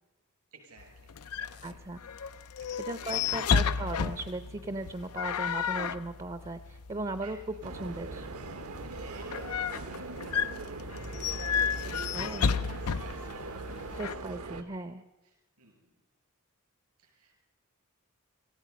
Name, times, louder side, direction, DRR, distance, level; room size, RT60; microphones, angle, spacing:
voice 1, 0.5-2.3 2.6-3.7 4.1-4.3 7.2-7.6 8.8-12.4 12.8-14.6 15.2-15.9 17.0-17.4, right 3 dB, 90° right, 1 dB, 7.0 m, -55 dB
sound 1, 0.8-14.1, left 6 dB, 85° left, 0.5 m, -33 dB
voice 2, 1.6-2.0 2.9-8.3 12.1-12.5 14.0-15.0, right 2 dB, 25° right, 11 dB, 0.6 m, -37 dB
sound 2, 7.6-14.6, right 2 dB, 75° right, 1.0 m, -40 dB
17.5 x 15.5 x 5.2 m, 1.1 s
head